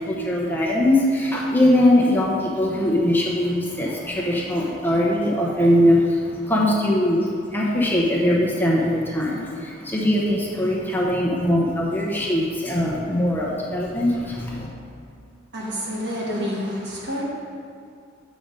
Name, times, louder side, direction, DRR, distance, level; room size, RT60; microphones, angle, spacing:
voice 1, 0.0-14.7, left 1 dB, 10° left, -4 dB, 0.9 m, -21 dB
voice 2, 15.5-17.2, equal, 60° right, -4 dB, 1.7 m, -28 dB
6.7 x 5.1 x 5.5 m, 2.4 s
head